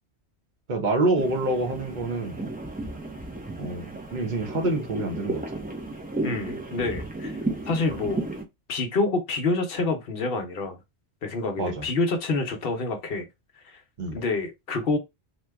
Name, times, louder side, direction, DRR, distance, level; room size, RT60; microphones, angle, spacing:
voice 1, 0.7-2.4 3.6-5.4 11.6-11.8 14.0-14.2, right 2 dB, 45° right, 0.8 m, -27 dB
sound 1, 1.2-8.4, right 2 dB, 15° right, 0.3 m, -34 dB
voice 2, 6.2-7.4 7.7-8.2 8.7-10.8 11.2-13.3 13.7-13.8 14.1-15.0, left 3 dB, 60° left, 0.9 m, -27 dB
2.8 x 2.2 x 3.4 m
omnidirectional pair, 1.2 m